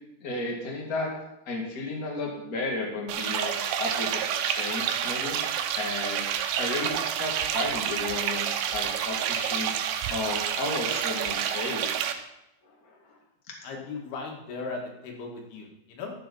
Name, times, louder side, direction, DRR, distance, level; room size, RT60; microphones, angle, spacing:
voice 1, 0.2-1.1 1.5-5.4 5.7-6.3 6.6-9.7 10.1-12.0 12.8-13.2, left 2 dB, 30° left, -1 dB, 2.0 m, -33 dB
sound 1, 3.1-12.1, right 9 dB, 85° right, 2.7 m, -29 dB
voice 2, 13.6-16.1, left 4 dB, 90° left, 1 dB, 3.9 m, -37 dB
13.0 x 7.5 x 5.4 m, 0.87 s
omnidirectional pair, 4.4 m